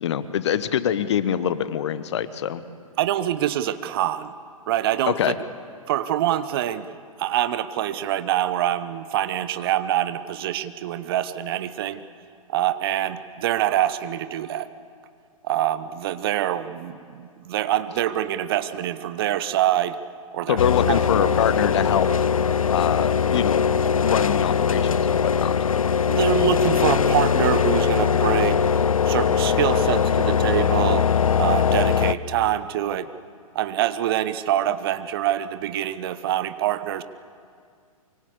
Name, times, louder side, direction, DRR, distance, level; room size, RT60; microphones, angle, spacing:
voice 1, 0.0-2.6 5.0-5.3 20.5-22.1 22.7-23.6 24.0-25.6, left 9 dB, 50° left, 14 dB, 1.1 m, -24 dB
voice 2, 3.0-4.3 4.7-5.2 5.9-6.9 7.2-12.0 12.5-14.7 15.4-20.0 20.3-20.6 20.9-21.3 26.0-28.7 29.0-31.1 31.4-33.1 33.5-37.0, right 12 dB, 40° right, 13 dB, 1.0 m, -25 dB
sound 1, 20.6-32.1, left 7 dB, 70° left, 0.7 m, -21 dB
24.5 x 24.0 x 8.3 m, 2.2 s
figure-of-eight pair, 115°, 18 cm